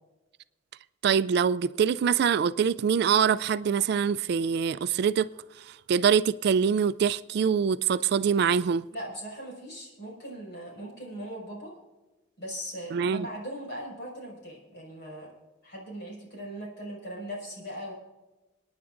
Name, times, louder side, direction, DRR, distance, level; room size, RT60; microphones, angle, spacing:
voice 1, 1.0-5.3 5.9-8.9 12.9-13.3, right 7 dB, 55° right, 0.3 m, -24 dB
voice 2, 8.9-11.7 12.4-15.3 15.6-17.9, equal, 60° left, 5.4 m, -39 dB
28.5 x 9.7 x 2.5 m
head